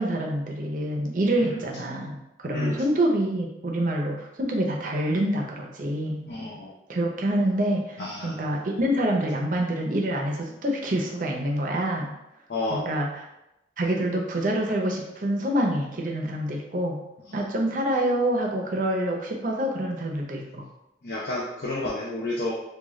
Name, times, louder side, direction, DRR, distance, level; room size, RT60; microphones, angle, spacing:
voice 1, 0.0-6.2 6.9-12.1 12.7-13.1 13.8-17.0 17.3-20.6, right 1 dB, 45° right, 0 dB, 0.6 m, -26 dB
voice 2, 2.5-2.8 6.3-6.7 8.0-8.6 12.5-12.9 17.3-17.5 21.0-22.5, left 2 dB, 60° left, -5 dB, 0.5 m, -31 dB
3.6 x 2.3 x 3.1 m, 0.90 s
head